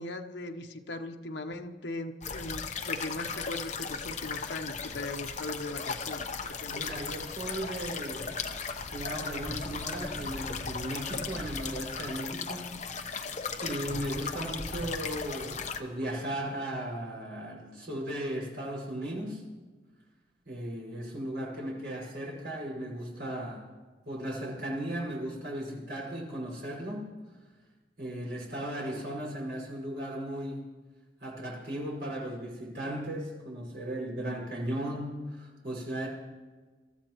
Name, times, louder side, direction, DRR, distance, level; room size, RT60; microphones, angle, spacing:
voice 1, 0.0-6.8, left 2 dB, 80° left, 5 dB, 1.0 m, -39 dB
sound 1, 2.2-15.8, left 5 dB, 40° left, 0.9 m, -37 dB
voice 2, 6.6-8.5 8.8-12.7 13.6-19.4 20.5-23.6 24.1-27.1 28.0-30.6 31.2-36.1, right 1 dB, 60° right, -3 dB, 5.4 m, -36 dB
27.0 x 13.5 x 3.1 m, 1.4 s
head